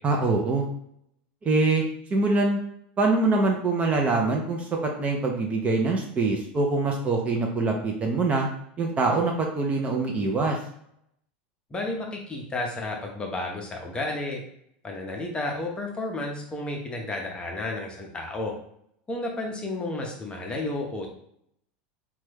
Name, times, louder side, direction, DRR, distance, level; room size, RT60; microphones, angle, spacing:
voice 1, 0.0-0.6 1.4-1.8 2.1-2.6 3.0-4.7 5.0-8.5 8.8-10.6, right 3 dB, 25° right, 1 dB, 0.5 m, -24 dB
voice 2, 11.7-14.4 14.8-18.5 19.1-21.1, left 2 dB, 15° left, 0 dB, 0.7 m, -32 dB
3.0 x 2.3 x 3.3 m, 0.70 s
supercardioid pair, 130°, 6 cm